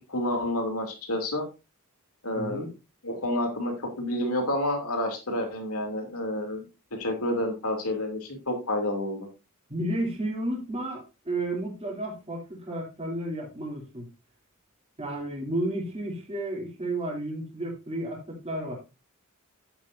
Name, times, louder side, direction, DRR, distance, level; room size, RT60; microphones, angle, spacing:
voice 1, 0.1-1.5 2.2-2.7 3.0-6.6 6.9-9.3, left 1 dB, 70° left, 3.0 m, -29 dB
voice 2, 2.4-2.7 9.7-14.1 15.0-18.8, right 1 dB, 25° right, 3.0 m, -32 dB
11.0 x 8.5 x 2.7 m
head